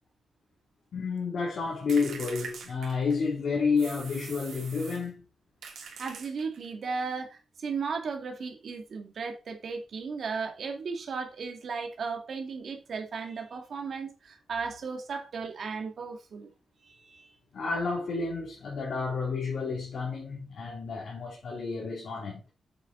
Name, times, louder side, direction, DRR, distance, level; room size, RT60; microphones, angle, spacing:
voice 1, 0.9-5.2 17.5-22.4, left 4 dB, 60° left, 3.1 m, -30 dB
sound 1, 1.9-3.3 3.8-5.1 5.6-6.7, right 5 dB, 85° right, 2.7 m, -43 dB
voice 2, 6.0-16.5 16.8-17.3, right 5 dB, 50° right, 2.0 m, -35 dB
7.7 x 7.3 x 3.8 m
wide cardioid pair, 175°, 0 cm